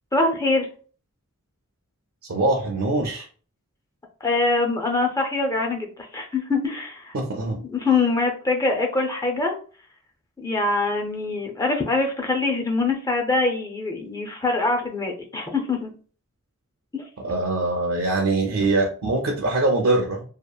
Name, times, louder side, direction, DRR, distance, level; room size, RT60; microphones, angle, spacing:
voice 1, 0.1-0.7 4.2-7.1 7.5-9.5 10.4-15.9 16.9-17.1, left 3 dB, 15° left, 2 dB, 0.4 m, -24 dB
voice 2, 2.3-3.3 7.1-7.6 17.2-20.2, right 2 dB, 65° right, 0 dB, 0.5 m, -23 dB
2.8 x 2.4 x 2.2 m, 0.41 s
head